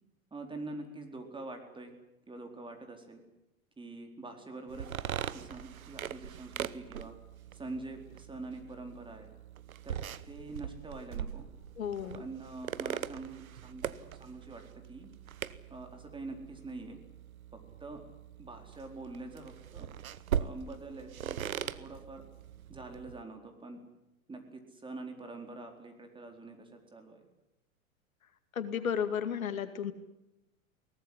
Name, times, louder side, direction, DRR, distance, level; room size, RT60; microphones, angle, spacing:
voice 1, 0.3-2.0 2.3-3.2 3.8-4.9 5.3-7.1 7.5-9.3 9.8-10.0 10.3-11.5 12.1-14.6 14.9-15.1 15.7-17.0 17.5-18.0 18.4-19.9 20.4-22.2 22.7-23.8 24.3-27.2, right 2 dB, 10° right, 4 dB, 4.3 m, -45 dB
sound 1, 4.7-23.2, right 9 dB, 75° right, 1.2 m, -41 dB
voice 2, 11.8-12.2 28.6-29.9, left 8 dB, 70° left, 10 dB, 2.3 m, -33 dB
22.5 x 19.0 x 10.0 m, 0.91 s
figure-of-eight pair, 100°, 42 cm